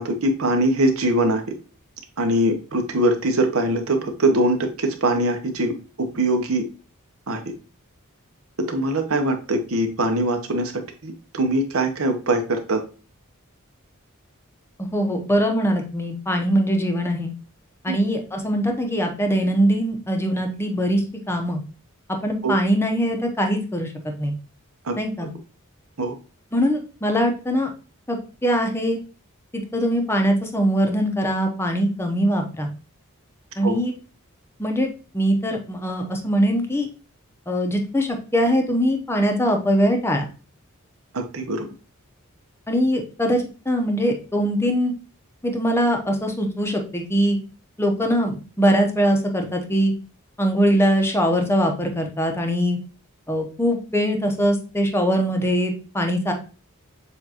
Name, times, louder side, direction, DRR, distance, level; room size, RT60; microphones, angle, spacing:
voice 1, 0.0-1.4 2.2-5.7 6.0-6.6 7.3-7.4 8.7-10.7 11.0-12.8 17.9-18.0 22.4-22.6 24.9-25.0 26.0-26.1 33.6-33.8 41.1-41.7, right 1 dB, 70° right, 5 dB, 0.9 m, -22 dB
voice 2, 14.8-17.3 17.8-21.6 22.2-23.9 24.2-24.3 25.0-25.3 26.5-27.7 28.1-29.0 29.7-32.7 33.6-33.9 34.6-34.9 35.1-36.9 37.5-40.3 42.7-44.9 45.4-47.4 47.8-49.9 50.4-52.8 53.3-56.3, equal, 10° left, 3 dB, 0.8 m, -22 dB
6.9 x 2.6 x 2.8 m, 0.35 s
head